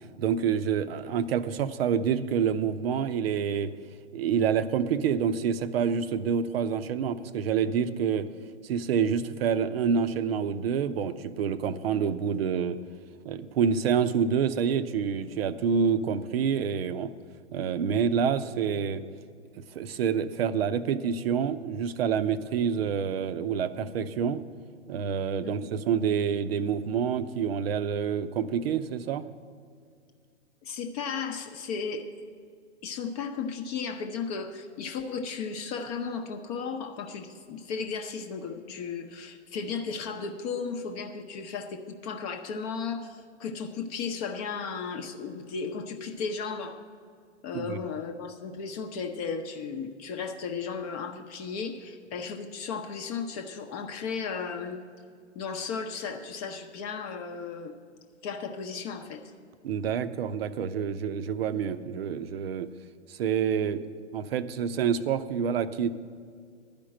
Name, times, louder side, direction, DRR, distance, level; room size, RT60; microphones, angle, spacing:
voice 1, 0.0-3.7 4.1-8.3 8.6-12.8 13.2-17.1 17.5-19.0 19.6-24.4 24.9-29.3 47.5-47.8 59.6-62.7 63.1-63.8 64.1-65.9, right 7 dB, 55° right, 12 dB, 0.7 m, -27 dB
voice 2, 30.6-32.1 32.8-46.8 47.4-54.8 55.3-57.7 58.2-59.2, left 5 dB, 35° left, 5 dB, 0.7 m, -35 dB
11.5 x 5.2 x 8.8 m, 2.1 s
hypercardioid pair, 120°, 35 cm